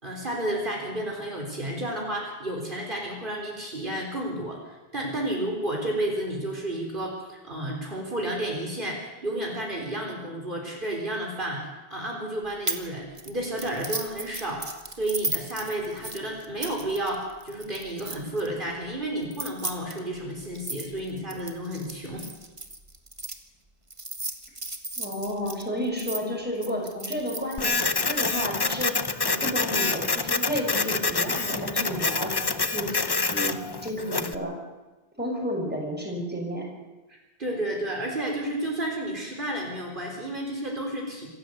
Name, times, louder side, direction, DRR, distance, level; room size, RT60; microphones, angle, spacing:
voice 1, 0.0-22.3 37.1-41.3, right 1 dB, 50° right, -1 dB, 4.3 m, -31 dB
sound 1, 12.7-12.9 13.2-18.5 19.2-23.3 23.9-26.2 26.6-28.2, right 2 dB, 30° right, 1.7 m, -35 dB
voice 2, 25.0-28.9 29.2-32.3 32.7-33.6 33.8-34.5 35.2-36.7, equal, 10° right, -1 dB, 6.1 m, -31 dB
Printer, 27.6-34.3, left 3 dB, 25° left, 0.7 m, -27 dB
26.5 x 14.5 x 8.0 m, 1.1 s
omnidirectional pair, 1.1 m